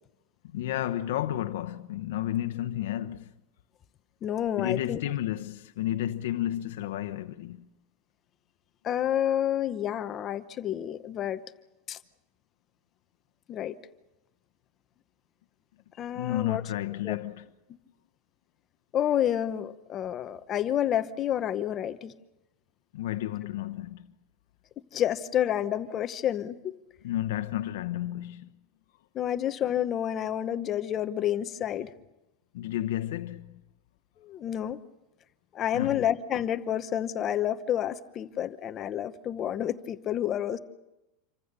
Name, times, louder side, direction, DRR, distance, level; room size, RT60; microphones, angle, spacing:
voice 1, 0.4-3.3 4.6-7.7 16.1-17.5 22.9-24.1 27.0-28.5 32.5-33.6 35.7-36.0, left 13 dB, 75° left, 1.0 m, -32 dB
voice 2, 4.2-5.0 8.8-11.4 11.9-12.0 13.5-13.8 16.0-16.6 17.0-17.2 18.9-22.1 24.9-26.8 29.1-31.9 34.2-34.8 35.5-40.6, left 10 dB, 25° left, 0.8 m, -29 dB
27.5 x 24.5 x 6.8 m
supercardioid pair, 175°, 0 cm